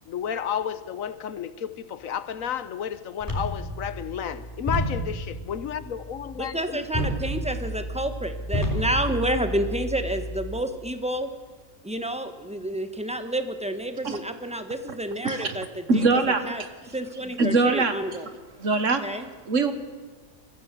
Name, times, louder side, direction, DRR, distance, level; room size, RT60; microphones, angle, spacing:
voice 1, 0.0-7.1 8.7-8.8, left 8 dB, 70° left, 14 dB, 1.2 m, -32 dB
sound 1, 3.2-10.6, right 1 dB, 15° left, 3.4 m, -31 dB
voice 2, 6.4-11.3 11.8-16.1 16.5-16.6 16.9-18.3 19.0-19.3, right 1 dB, 5° right, 8 dB, 1.3 m, -29 dB
voice 3, 15.2-15.6 15.9-16.5 17.4-17.9 18.6-19.0 19.5-19.7, right 3 dB, 60° right, 9 dB, 1.8 m, -22 dB
22.5 x 15.0 x 7.6 m, 1.4 s
omnidirectional pair, 1.5 m